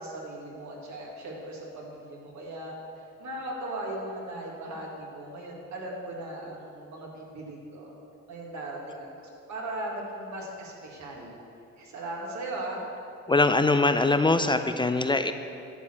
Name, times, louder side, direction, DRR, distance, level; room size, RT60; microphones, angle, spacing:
voice 1, 0.0-7.9 8.3-11.3 11.8-12.8, right 1 dB, 70° right, -2 dB, 2.1 m, -38 dB
voice 2, 13.3-15.3, left 3 dB, 15° left, 9 dB, 0.4 m, -22 dB
11.0 x 4.5 x 7.4 m, 2.6 s
cardioid pair, 90°, 30 cm